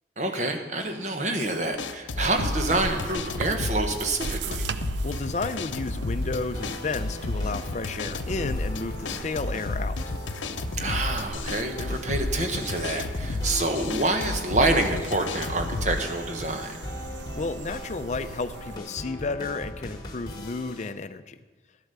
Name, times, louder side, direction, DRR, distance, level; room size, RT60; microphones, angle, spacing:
voice 1, 0.2-4.6 10.8-16.8, right 2 dB, 40° right, 5 dB, 1.2 m, -27 dB
sound 1, 1.7-16.0, left 2 dB, 85° left, 0.7 m, -32 dB
sound 2, 2.1-18.8, right 4 dB, 70° right, 0.5 m, -39 dB
voice 2, 5.0-10.0 17.4-21.4, left 3 dB, 40° left, 11 dB, 0.5 m, -32 dB
sound 3, 6.0-20.9, left 1 dB, 20° left, 1.4 m, -40 dB
12.0 x 8.1 x 6.7 m, 1.3 s
head